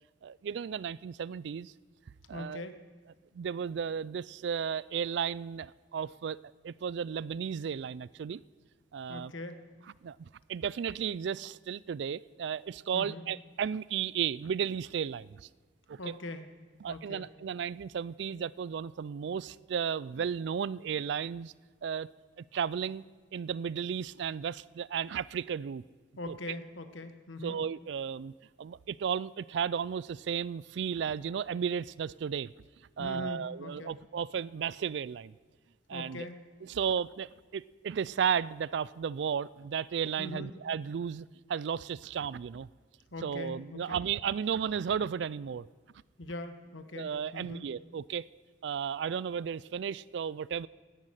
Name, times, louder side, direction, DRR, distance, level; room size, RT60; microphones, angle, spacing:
voice 1, 0.2-1.7 2.3-2.7 3.3-8.4 8.9-9.3 10.0-15.5 15.9-16.1 16.8-21.5 21.8-22.1 22.4-23.0 23.3-25.8 26.3-26.4 27.4-28.3 28.6-32.5 33.0-35.3 35.9-36.2 36.7-42.7 43.2-45.7 46.9-48.3 48.6-50.7, right 7 dB, 65° right, 21 dB, 0.3 m, -34 dB
voice 2, 2.3-2.8 9.1-9.7 12.9-13.3 16.0-16.5 16.9-17.3 26.2-27.6 33.0-34.0 35.9-36.4 40.2-40.5 43.1-44.0 46.2-47.7, left 2 dB, 80° left, 9 dB, 1.2 m, -41 dB
10.5 x 10.0 x 8.9 m, 1.4 s
head